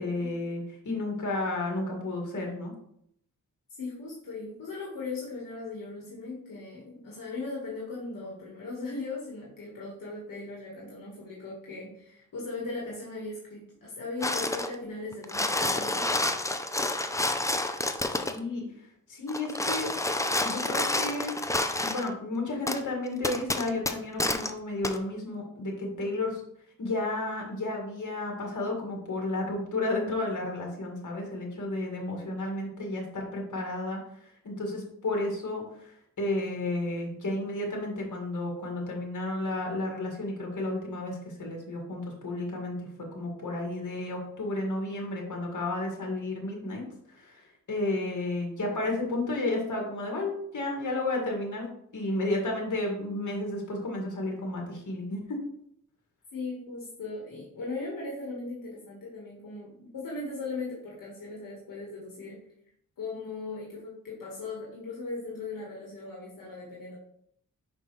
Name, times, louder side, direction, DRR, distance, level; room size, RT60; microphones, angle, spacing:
voice 1, 0.0-2.7 18.1-18.6 19.1-19.9 20.4-21.3 21.8-26.4 26.8-34.0 34.4-42.9 43.1-46.8 47.1-51.7 51.9-55.4, left 2 dB, 65° left, 0 dB, 2.0 m, -32 dB
voice 2, 3.7-16.1 56.3-62.4 63.0-67.0, left 3 dB, 85° left, -4 dB, 1.5 m, -38 dB
sound 1, 14.2-14.7 15.1-18.4 19.3-22.1 22.7-22.8 23.2-24.5 24.8-25.0, left 2 dB, 10° left, 0.5 m, -29 dB
5.7 x 5.3 x 3.2 m, 0.70 s
cardioid pair, 70°, 32 cm